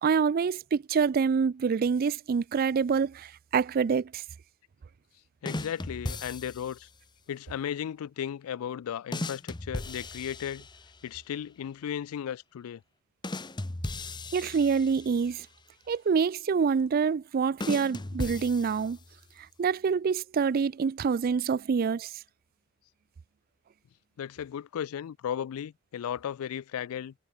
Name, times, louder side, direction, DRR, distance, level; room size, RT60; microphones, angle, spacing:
voice 1, 0.0-4.2 14.3-15.5 15.9-19.0 19.6-22.1, right 6 dB, 45° right, 0.3 m, -26 dB
voice 2, 5.4-6.9 7.3-10.7 11.0-12.8 24.2-27.1, left 9 dB, 85° left, 0.3 m, -35 dB
sound 1, 5.5-6.9 9.1-11.1 13.2-15.4 17.6-19.2, left 2 dB, 20° left, 0.8 m, -37 dB
head